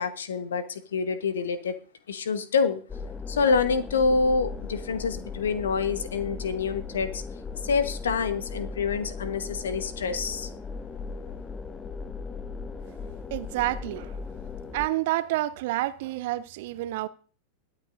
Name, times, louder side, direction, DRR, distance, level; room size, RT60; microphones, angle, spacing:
voice 1, 0.0-1.7 2.1-2.8 3.3-7.2 7.6-10.5, left 5 dB, 65° left, 1.1 m, -27 dB
sound 1, 2.9-14.9, left 4 dB, 15° left, 0.8 m, -37 dB
voice 2, 13.3-14.1 14.7-17.1, right 16 dB, 50° right, 0.7 m, -29 dB
21.5 x 9.1 x 2.6 m
figure-of-eight pair, 90°, 0 cm